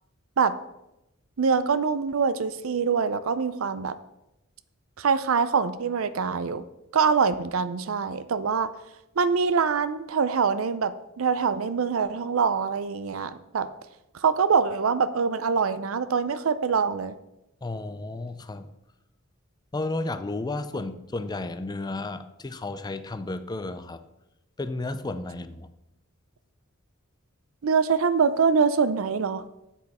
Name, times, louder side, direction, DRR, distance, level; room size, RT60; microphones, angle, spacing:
voice 1, 1.4-4.0 5.0-6.6 6.9-8.7 9.2-13.7 14.1-17.1 27.6-29.5, right 5 dB, 70° right, 13 dB, 0.5 m, -24 dB
voice 2, 17.6-18.7 19.7-24.0 24.6-25.7, left 2 dB, 20° left, 11 dB, 0.4 m, -33 dB
8.8 x 7.3 x 4.2 m, 0.91 s
head